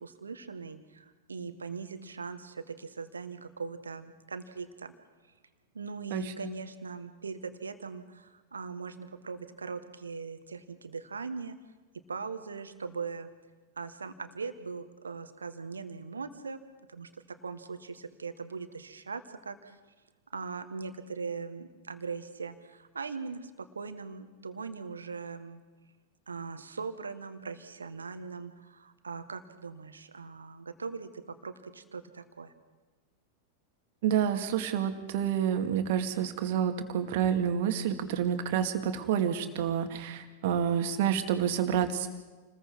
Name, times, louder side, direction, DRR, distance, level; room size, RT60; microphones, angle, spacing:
voice 1, 0.0-4.9 5.7-11.6 12.1-13.3 13.8-16.6 16.9-17.1 17.4-19.8 20.3-23.5 23.8-25.6 26.3-31.1 31.4-32.5, right 4 dB, 75° right, 9 dB, 1.6 m, -40 dB
voice 2, 34.0-42.1, right 9 dB, 50° right, 6 dB, 2.1 m, -28 dB
29.0 x 20.5 x 4.7 m, 1.2 s
figure-of-eight pair, 90°, 0 cm